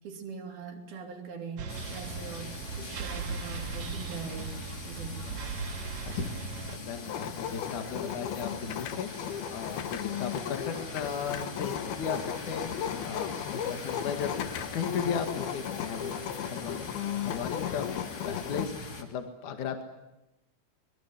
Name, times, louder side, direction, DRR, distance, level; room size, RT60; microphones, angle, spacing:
voice 1, 0.0-5.3, right 5 dB, 75° right, 2 dB, 5.1 m, -42 dB
sound 1, 1.6-6.8, right 5 dB, 55° right, 2.6 m, -38 dB
sound 2, 1.7-19.0, left 2 dB, 30° left, 2.7 m, -43 dB
voice 2, 6.7-13.3 13.6-14.3 14.7-16.2 16.5-17.9 18.2-19.8, left 6 dB, 60° left, 6 dB, 3.2 m, -36 dB
sound 3, 7.0-18.7, left 10 dB, 80° left, 3.1 m, -36 dB
25.0 x 22.0 x 9.7 m, 0.94 s
omnidirectional pair, 4.3 m